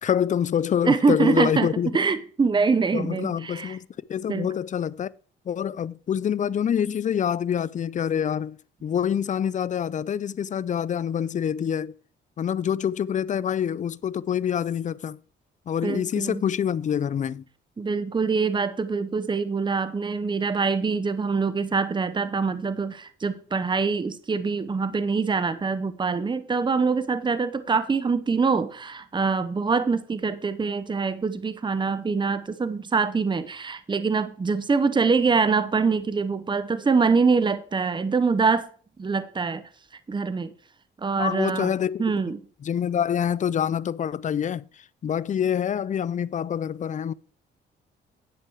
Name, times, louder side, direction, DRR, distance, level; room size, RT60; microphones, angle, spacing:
voice 1, 0.0-1.9 2.9-5.1 5.5-8.6 8.8-11.9 12.4-15.2 15.7-17.4 41.2-42.0 42.6-47.1, left 8 dB, 40° left, 0.5 m, -26 dB
voice 2, 0.9-1.7 1.9-3.8 4.3-4.5 15.8-16.4 17.8-38.7 39.0-39.7 40.1-40.5 41.0-41.7 42.0-42.4, right 4 dB, 25° right, 0.9 m, -24 dB
10.5 x 8.0 x 4.7 m
cardioid pair, 90°, 20 cm